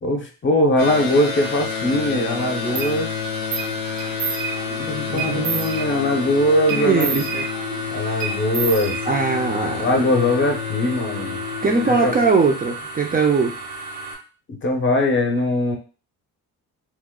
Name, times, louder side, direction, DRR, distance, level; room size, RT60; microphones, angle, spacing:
voice 1, 0.0-3.1 4.8-7.2 7.9-9.0 9.8-11.4 11.9-12.2 14.5-15.8, left 1 dB, 30° left, 3 dB, 0.7 m, -21 dB
sound 1, 0.8-12.3, left 9 dB, 70° left, 0.6 m, -30 dB
sound 2, 0.8-14.1, right 2 dB, 85° right, 0.9 m, -34 dB
sound 3, 2.8-2.9 3.5-3.7 4.0-4.8 5.2-6.2 6.7-7.8 8.2-9.4, right 6 dB, 70° right, 0.6 m, -29 dB
voice 2, 5.1-5.6 6.7-7.5 8.0-8.3 9.0-9.8 11.6-13.5, right 4 dB, 25° right, 0 dB, 0.4 m, -21 dB
3.0 x 2.1 x 3.6 m, 0.35 s
cardioid pair, 120°, 37 cm